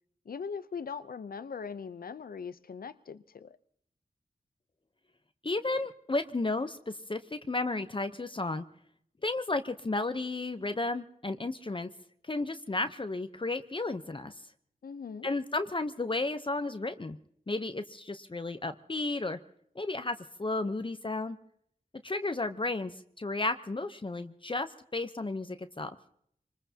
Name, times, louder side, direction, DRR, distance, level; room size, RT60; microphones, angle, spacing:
voice 1, 0.3-3.6 14.8-15.3, left 6 dB, 75° left, 14 dB, 0.6 m, -40 dB
voice 2, 5.4-8.6 9.2-11.9 12.3-14.3 15.2-17.2 17.5-19.4 19.8-21.4 22.0-25.9, left 2 dB, 35° left, 9 dB, 0.8 m, -33 dB
25.5 x 20.0 x 2.8 m, 0.68 s
cardioid pair, 45°, 15 cm